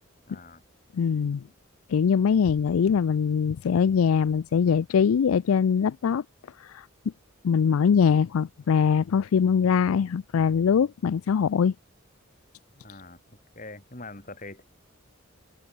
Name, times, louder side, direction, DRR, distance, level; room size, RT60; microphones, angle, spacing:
voice 1, 0.3-0.6 12.7-13.2 13.5-14.6, left 2 dB, 40° left, 5.3 m, -44 dB
voice 2, 0.9-1.4 1.9-6.2 6.6-6.9 7.4-11.7, left 6 dB, 85° left, 0.4 m, -22 dB
head